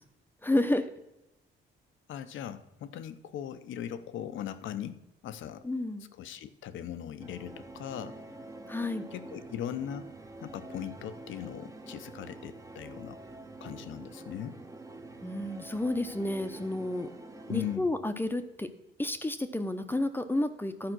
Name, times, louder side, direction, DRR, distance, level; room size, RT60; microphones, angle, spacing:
voice 1, 0.4-0.9 5.6-6.1 8.7-9.0 15.2-17.1 17.5-18.7 19.0-20.9, left 1 dB, 10° left, 8 dB, 0.8 m, -31 dB
voice 2, 2.1-5.7 6.2-8.2 9.1-10.1 10.4-13.2 13.6-14.6 17.5-17.9, left 10 dB, 75° left, 12 dB, 0.7 m, -39 dB
sound 1, 7.2-17.8, right 2 dB, 15° right, 1.0 m, -46 dB
11.5 x 5.0 x 6.2 m, 0.92 s
cardioid pair, 90°, 20 cm